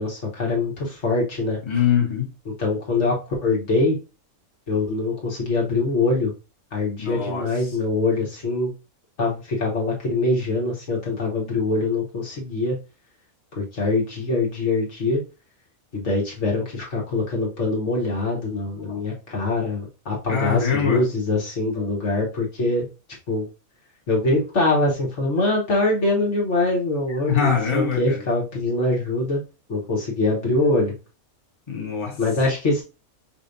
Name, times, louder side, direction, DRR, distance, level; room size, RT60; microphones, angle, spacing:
voice 1, 0.0-1.6 2.6-4.0 4.7-6.3 6.7-8.7 9.2-12.8 13.5-15.2 15.9-22.8 23.3-23.5 24.1-29.4 29.7-30.9 32.2-32.8, left 2 dB, 55° left, 1.5 m, -23 dB
voice 2, 1.6-2.3 7.0-7.8 18.8-19.0 20.3-21.0 27.1-28.2 31.7-32.2, left 7 dB, 20° left, 1.1 m, -24 dB
5.4 x 3.3 x 2.6 m
omnidirectional pair, 1.5 m